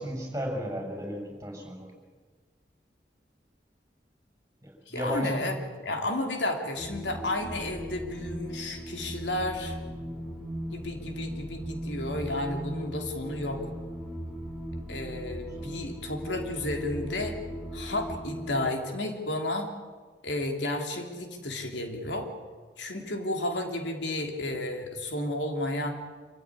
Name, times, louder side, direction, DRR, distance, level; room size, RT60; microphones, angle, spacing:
voice 1, 0.0-1.9 4.6-5.3 6.0-6.1 15.2-15.3 15.6-15.7, equal, 15° right, 2 dB, 6.6 m, -34 dB
voice 2, 4.9-9.8 10.7-13.6 14.9-17.4 17.7-19.7 20.2-22.3 22.8-25.9, left 1 dB, 85° left, 3 dB, 3.2 m, -32 dB
sound 1, 6.8-18.6, equal, ahead, 5.1 m, -38 dB
26.5 x 15.0 x 9.8 m, 1.5 s
head